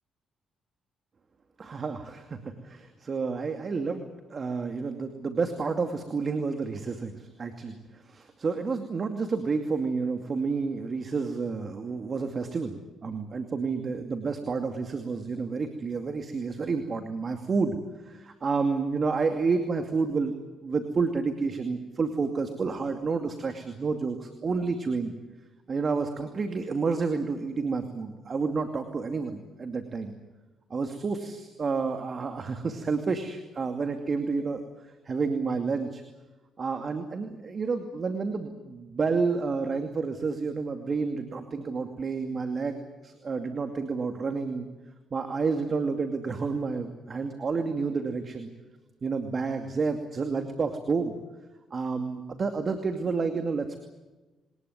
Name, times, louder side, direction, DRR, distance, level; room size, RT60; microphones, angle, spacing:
voice 1, 1.6-17.8 18.0-20.4 20.6-25.1 25.7-30.1 30.7-34.6 35.1-36.0 36.6-44.7 45.1-48.5 49.0-51.1 51.7-53.8, right 4 dB, 45° right, 6 dB, 2.4 m, -30 dB
22.5 x 20.0 x 9.6 m, 1.1 s
supercardioid pair, 60°, 0 cm